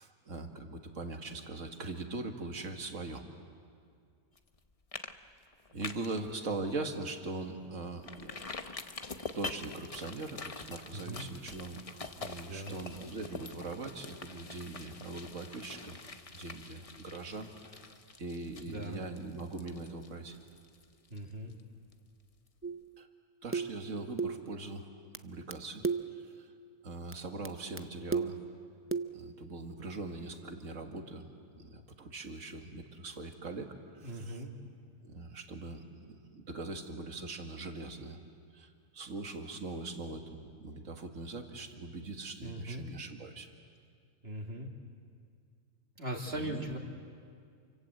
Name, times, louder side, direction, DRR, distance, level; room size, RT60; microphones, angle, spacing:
voice 1, 0.0-3.2 5.7-8.3 9.3-17.5 18.2-20.4 23.0-23.1 23.4-24.9 25.2-26.5 26.8-28.4 29.1-33.7 33.9-34.4 35.0-38.2 38.5-43.5 46.3-46.7, right 3 dB, 65° right, 4 dB, 2.2 m, -41 dB
sound 1, 4.4-4.6 4.9-5.1 5.4-6.2 6.6-6.7 7.1-7.2 8.0-21.6 21.9-22.0, left 3 dB, 30° left, 0.9 m, -45 dB
voice 2, 10.9-11.3 12.5-12.8 18.7-19.0 21.1-21.5 34.0-34.5 42.4-42.8 44.2-44.7 46.0-46.8, right 1 dB, 45° right, 1 dB, 2.9 m, -39 dB
sound 2, 22.6-22.9 23.5-23.8 24.2-24.5 25.1-25.2 25.5-25.6 25.8-26.2 27.1-27.2 27.4-27.5 27.8-27.9 28.1-28.5 28.9-29.2, right 5 dB, 20° right, 0.3 m, -33 dB
28.5 x 25.5 x 7.9 m, 2.2 s
omnidirectional pair, 1.4 m